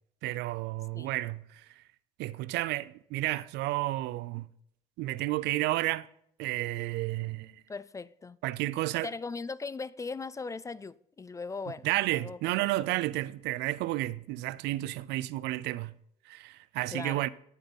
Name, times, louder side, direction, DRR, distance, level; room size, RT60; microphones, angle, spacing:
voice 1, 0.2-1.8 2.2-4.5 5.0-6.1 6.4-7.6 8.4-9.1 11.8-15.9 16.3-17.3, right 17 dB, 85° right, 0.5 m, -31 dB
voice 2, 7.7-8.4 9.0-13.0 16.9-17.3, left 4 dB, 20° left, 0.3 m, -39 dB
18.0 x 7.1 x 4.1 m
cardioid pair, 110°, 17 cm